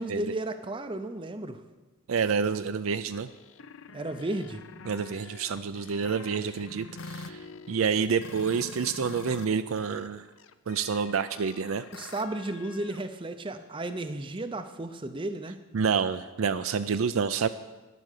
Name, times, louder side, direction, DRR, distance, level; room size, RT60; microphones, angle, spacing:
voice 1, 0.0-1.6 3.9-4.6 11.9-15.6, right 2 dB, 25° right, 7 dB, 0.5 m, -34 dB
voice 2, 2.1-3.3 4.8-7.4 7.7-10.2 10.7-11.8 15.7-17.5, right 6 dB, 75° right, 10 dB, 0.4 m, -28 dB
sound 1, 3.3-9.5 9.8-13.0, left 4 dB, 70° left, 0.6 m, -46 dB
11.0 x 11.0 x 6.6 m, 1.2 s
head